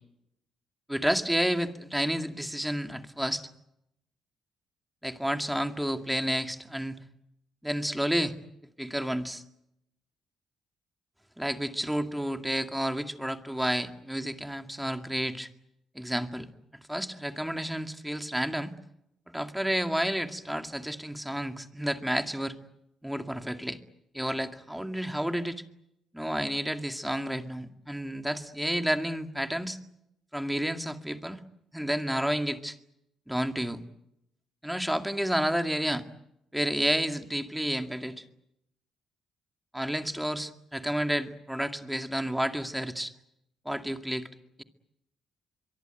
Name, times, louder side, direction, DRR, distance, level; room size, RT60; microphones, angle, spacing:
voice 1, 0.9-3.5 5.0-7.0 7.6-8.3 8.8-9.4 11.4-15.5 16.0-16.5 16.9-18.7 19.3-22.5 23.0-23.8 24.1-25.6 26.1-29.8 30.3-31.4 31.7-32.8 33.3-33.8 34.6-36.1 36.5-38.2 39.7-43.1 43.7-44.3, equal, 5° right, 7 dB, 2.2 m, -30 dB
24.0 x 23.0 x 9.2 m, 0.80 s
cardioid pair, 90°, 0 cm